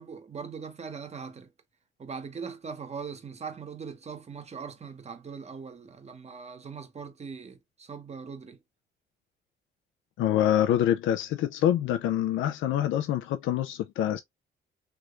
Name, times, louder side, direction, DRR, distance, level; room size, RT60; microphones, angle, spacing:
voice 1, 0.0-1.5 2.0-8.6 14.1-14.2, right 5 dB, 35° right, 1.0 m, -40 dB
voice 2, 10.2-14.2, left 11 dB, 80° left, 0.5 m, -26 dB
3.4 x 3.0 x 2.4 m
cardioid pair, 90°, 20 cm